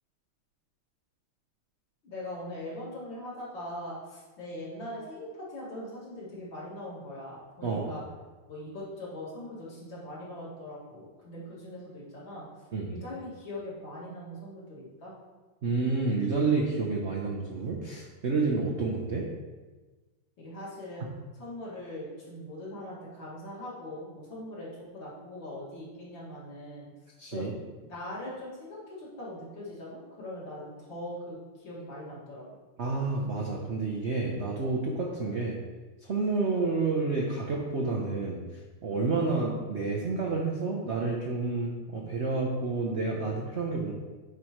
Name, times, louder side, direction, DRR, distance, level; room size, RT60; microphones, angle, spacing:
voice 1, 2.0-8.0 8.5-12.5 12.9-15.1 20.4-26.9 27.3-32.6, left 1 dB, 60° left, -7 dB, 2.8 m, -41 dB
voice 2, 7.6-8.0 12.7-12.9 15.6-19.2 27.2-27.5 32.8-35.6 36.0-38.4 38.8-43.9, right 3 dB, 80° right, -1 dB, 0.6 m, -29 dB
9.6 x 4.8 x 3.1 m, 1.3 s
omnidirectional pair, 2.3 m